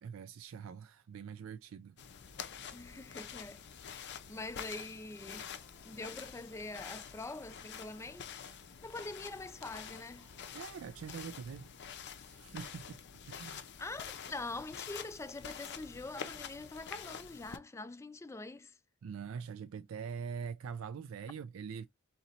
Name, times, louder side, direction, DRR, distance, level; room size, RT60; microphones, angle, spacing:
voice 1, 0.0-2.0 10.5-11.7 12.2-13.7 19.0-21.9, right 6 dB, 75° right, 0.3 m, -44 dB
sound 1, 2.0-17.6, left 7 dB, 55° left, 0.6 m, -47 dB
voice 2, 2.7-3.6 3.9-5.5 5.8-8.4 8.8-10.3 13.8-18.7, left 2 dB, 15° left, 0.3 m, -44 dB
sound 2, 4.3-12.0, right 2 dB, 20° right, 0.8 m, -69 dB
3.9 x 2.9 x 4.2 m
head